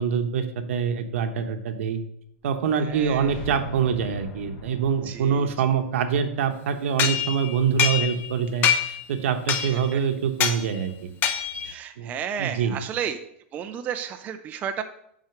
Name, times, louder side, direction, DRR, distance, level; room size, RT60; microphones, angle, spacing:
voice 1, 0.0-2.0 2.4-11.1 12.0-12.1 12.4-12.8, right 7 dB, 70° right, 8 dB, 1.0 m, -25 dB
voice 2, 2.7-3.3 5.0-5.5 9.5-10.0 11.6-13.2 13.5-14.8, right 8 dB, 20° right, 7 dB, 0.4 m, -33 dB
sound 1, 2.8-7.7, equal, 50° left, 1.5 m, -41 dB
sound 2, 7.0-8.3 8.6-9.0 9.5-9.9 10.4-10.6 11.2-11.7, left 8 dB, 25° left, 0.7 m, -24 dB
6.4 x 4.7 x 5.9 m, 0.74 s
supercardioid pair, 155°, 7 cm